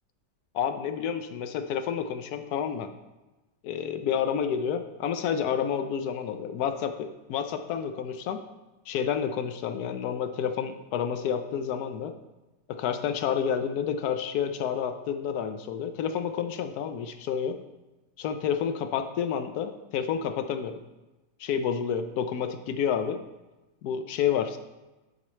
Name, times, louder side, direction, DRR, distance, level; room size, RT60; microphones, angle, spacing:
voice 1, 0.5-2.9 3.6-8.4 8.9-12.1 12.7-17.6 18.2-20.8 21.4-23.2 23.8-24.6, left 8 dB, 70° left, 8 dB, 1.0 m, -29 dB
11.5 x 4.3 x 3.1 m, 1.1 s
omnidirectional pair, 1.8 m